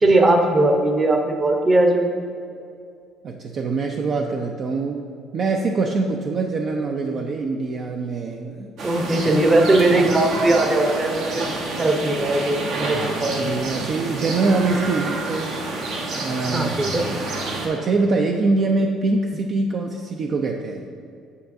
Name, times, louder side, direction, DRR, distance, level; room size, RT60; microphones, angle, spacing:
voice 1, 0.0-2.2 8.8-11.4 11.8-13.4 16.5-17.0, right 2 dB, 25° right, 3 dB, 0.8 m, -19 dB
voice 2, 3.2-5.0 5.3-8.7 9.9-10.1 12.9-15.6 16.2-16.8 17.6-20.8, right 3 dB, 50° right, 2 dB, 0.4 m, -24 dB
sound 1, 8.8-17.7, right 2 dB, 65° right, 1.0 m, -28 dB
8.2 x 6.5 x 2.6 m, 2.4 s
cardioid pair, 95°, 0 cm